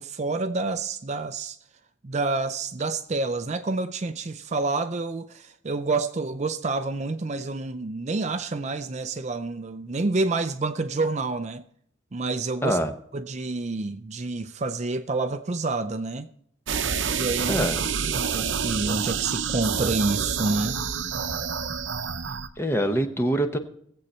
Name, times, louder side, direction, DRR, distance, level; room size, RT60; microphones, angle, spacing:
voice 1, 0.0-1.6 2.0-11.6 12.1-12.8 13.1-16.3 17.1-17.7 18.0-20.8, right 3 dB, 35° right, 0.5 m, -28 dB
sound 1, 16.7-22.5, right 6 dB, 65° right, 0.8 m, -28 dB
voice 2, 22.6-23.6, equal, 10° left, 0.9 m, -24 dB
18.5 x 8.0 x 4.3 m
head